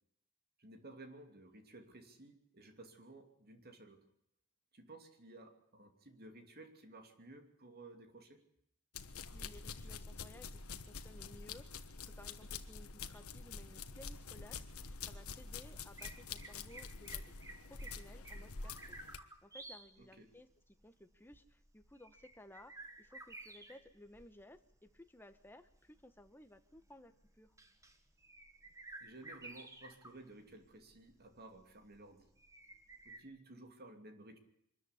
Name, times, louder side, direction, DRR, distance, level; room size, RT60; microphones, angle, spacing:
voice 1, 0.6-4.1 4.7-8.4 20.0-20.3 29.0-32.3 33.0-34.4, right 2 dB, 45° right, 6 dB, 2.9 m, -55 dB
sound 1, 8.9-19.2, left 5 dB, 85° left, 1.4 m, -47 dB
voice 2, 9.3-17.3 17.6-20.5 20.8-27.6, left 1 dB, 10° left, 8 dB, 1.3 m, -58 dB
sound 2, 14.9-33.2, right 2 dB, 15° right, 1.8 m, -55 dB
24.0 x 13.5 x 10.0 m, 0.76 s
head